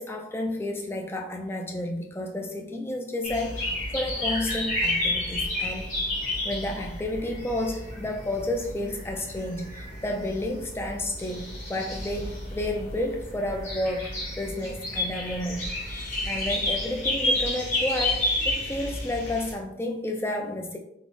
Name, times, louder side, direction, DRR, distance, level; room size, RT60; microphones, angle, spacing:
voice 1, 0.0-6.0 6.4-20.8, left 1 dB, 15° left, 2 dB, 0.3 m, -31 dB
sound 1, 3.2-19.5, left 1 dB, 45° left, 1.3 m, -31 dB
3.8 x 2.0 x 3.2 m, 0.82 s
head